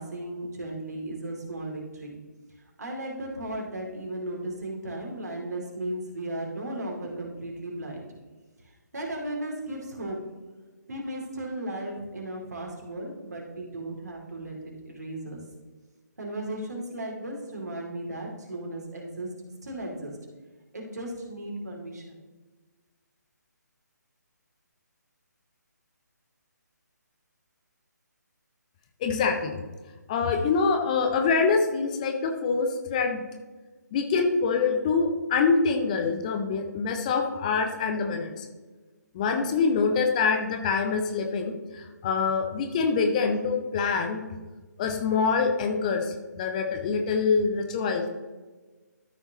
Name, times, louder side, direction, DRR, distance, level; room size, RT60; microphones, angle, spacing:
voice 1, 0.0-2.2 2.8-8.0 8.9-10.2 10.9-15.4 16.2-19.3 19.6-20.1 20.7-22.2, right 1 dB, 60° right, 0 dB, 2.6 m, -35 dB
voice 2, 29.0-29.6 30.1-33.2 33.9-38.5 39.1-44.2 44.8-48.1, left 5 dB, 25° left, 5 dB, 0.6 m, -25 dB
13.0 x 5.6 x 2.9 m, 1.3 s
figure-of-eight pair, 145°, 10 cm